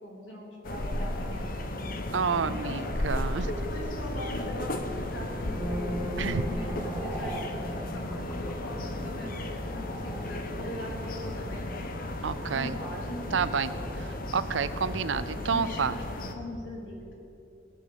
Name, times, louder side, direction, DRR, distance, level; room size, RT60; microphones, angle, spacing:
voice 1, 0.0-1.9 2.4-2.8 3.5-12.1 12.5-13.9 15.5-17.1, left 1 dB, 90° left, -2 dB, 3.6 m, -41 dB
sound 1, 0.6-16.4, left 1 dB, 50° left, 1.0 m, -34 dB
voice 2, 2.1-3.5 6.2-6.5 12.2-12.8 13.3-13.7 14.3-16.0, right 6 dB, 90° right, 14 dB, 0.6 m, -29 dB
sound 2, 5.3-13.7 14.0-14.3, equal, 5° left, 1.5 m, -40 dB
18.5 x 6.3 x 8.2 m, 2.9 s
head